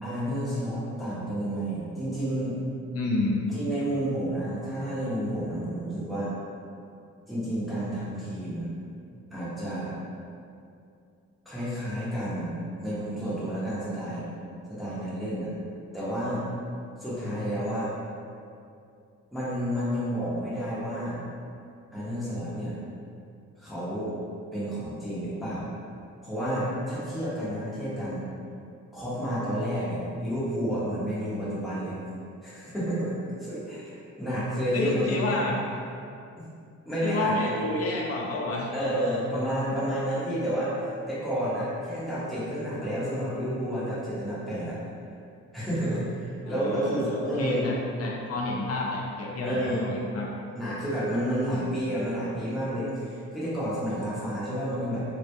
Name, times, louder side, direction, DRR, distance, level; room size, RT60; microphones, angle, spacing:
voice 1, 0.0-2.6 3.5-6.3 7.3-8.7 9.3-9.9 11.5-14.3 14.7-15.5 15.9-16.4 17.0-17.9 19.3-21.2 21.9-22.8 23.6-24.1 24.5-25.7 26.2-28.2 28.9-32.0 32.4-33.1 33.4-35.5 36.8-37.4 38.7-40.8 41.1-44.8 45.5-47.7 49.4-49.9 50.5-55.0, equal, ahead, -10 dB, 0.7 m, -30 dB
voice 2, 2.9-3.5 34.7-35.6 37.0-38.7 46.4-50.4, left 2 dB, 55° left, -2 dB, 0.5 m, -30 dB
2.2 x 2.0 x 2.8 m, 2.5 s
cardioid pair, 90°, 30 cm